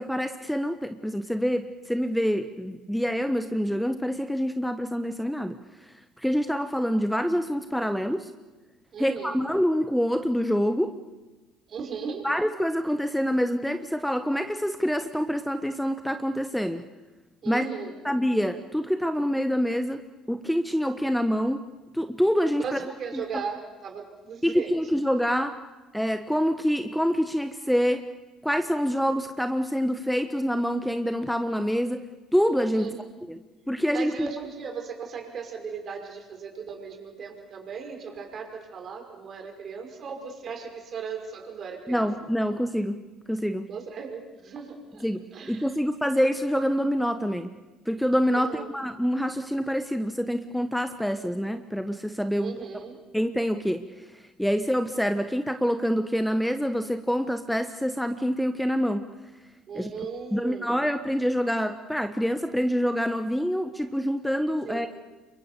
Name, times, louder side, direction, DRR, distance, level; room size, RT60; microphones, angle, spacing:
voice 1, 0.0-5.6 5.8-8.3 9.0-11.0 12.2-16.8 17.4-17.7 18.0-20.0 20.3-21.6 21.9-22.8 23.1-23.4 24.4-25.6 25.9-28.1 28.4-32.0 32.3-32.9 33.3-33.4 33.7-34.3 41.9-43.7 45.0-45.2 45.5-47.5 47.9-52.5 53.1-59.1 59.7-59.9 60.3-65.0, equal, ahead, 9 dB, 1.3 m, -26 dB
voice 2, 8.9-9.4 11.7-12.3 17.4-18.0 22.6-24.8 32.7-33.1 33.9-42.1 43.7-45.1 45.3-45.7 48.4-48.7 52.4-53.0 59.7-60.8 64.7-64.9, right 6 dB, 45° right, 4 dB, 5.7 m, -37 dB
29.0 x 24.0 x 6.9 m, 1.2 s
figure-of-eight pair, 55°, 0 cm